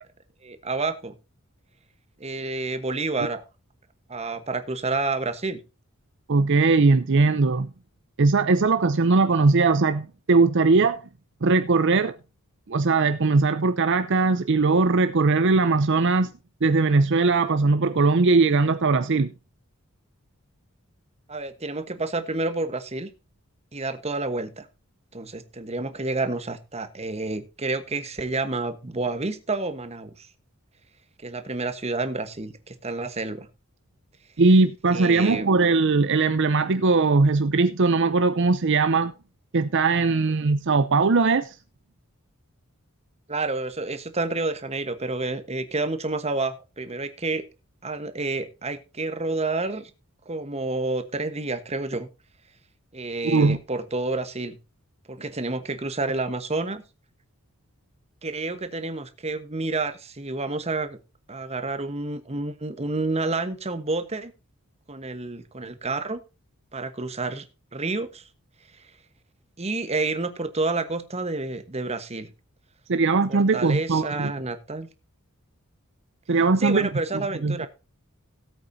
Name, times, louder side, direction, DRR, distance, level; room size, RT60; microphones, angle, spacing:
voice 1, 0.4-1.1 2.2-3.4 4.1-5.6 21.3-23.1 23.7-24.7 25.1-30.3 31.2-33.5 34.9-35.5 43.3-47.4 47.8-49.9 50.3-52.1 52.9-54.6 55.1-56.8 58.2-61.0 61.3-64.3 64.9-66.2 66.7-67.5 67.7-68.2 68.7-68.8 69.6-72.3 73.3-74.9 76.6-77.7, right 3 dB, 30° right, 1.2 m, -29 dB
voice 2, 6.3-7.7 8.2-11.0 11.4-12.1 12.7-16.3 16.6-19.3 34.4-39.1 39.5-41.6 53.2-53.6 72.9-74.3 76.3-76.9 77.4-77.7, right 3 dB, 55° right, 0.6 m, -20 dB
17.5 x 8.3 x 2.7 m
head